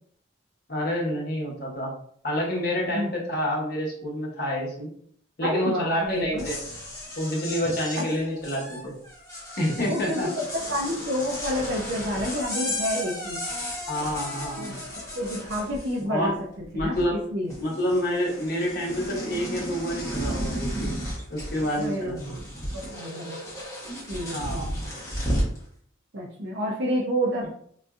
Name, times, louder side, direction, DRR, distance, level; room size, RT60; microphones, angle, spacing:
voice 1, 0.7-1.9 2.2-4.9 5.4-6.6 7.2-8.9 9.6-10.3 13.9-14.8 16.1-16.3 16.7-17.2 17.6-20.9 21.3-22.2 24.3-24.7, equal, 50° left, -3 dB, 1.1 m, -28 dB
voice 2, 5.4-6.5 8.0-8.1 9.9-13.4 14.6-14.7 15.2-17.5 21.8-22.3 22.7-23.4 24.1-24.7 26.1-27.5, equal, 60° right, -2 dB, 0.5 m, -29 dB
sound 1, 6.2-16.2 16.5-17.2 17.5-25.6, equal, 15° left, 1.0 m, -34 dB
3.8 x 2.6 x 2.4 m, 0.62 s
head